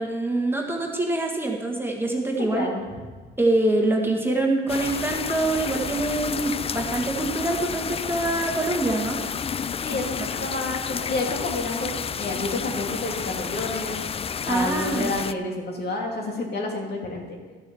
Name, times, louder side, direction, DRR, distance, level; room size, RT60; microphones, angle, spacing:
voice 1, 0.0-2.7 3.4-9.2 14.5-15.1, right 2 dB, 10° right, 0 dB, 1.7 m, -25 dB
voice 2, 2.5-2.8 9.8-14.0 14.5-17.4, left 2 dB, 55° left, 0 dB, 2.7 m, -29 dB
sound 1, 4.7-15.3, left 7 dB, 30° left, 0.4 m, -31 dB
12.5 x 7.0 x 7.1 m, 1.4 s
cardioid pair, 90°, 20 cm